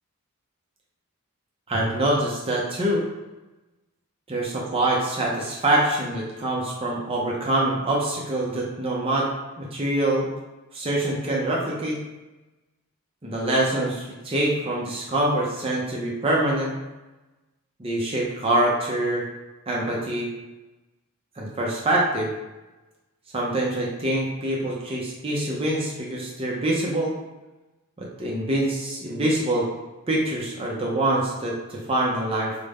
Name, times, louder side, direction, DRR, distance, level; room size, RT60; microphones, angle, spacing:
voice 1, 1.7-3.1 4.3-9.3 9.6-10.3 10.7-12.0 13.2-16.7 17.8-19.3 19.7-20.3 21.4-22.3 23.3-27.1 28.0-29.7 30.1-32.6, right 1 dB, 25° right, -4 dB, 0.5 m, -25 dB
4.9 x 2.1 x 3.4 m, 1.1 s
head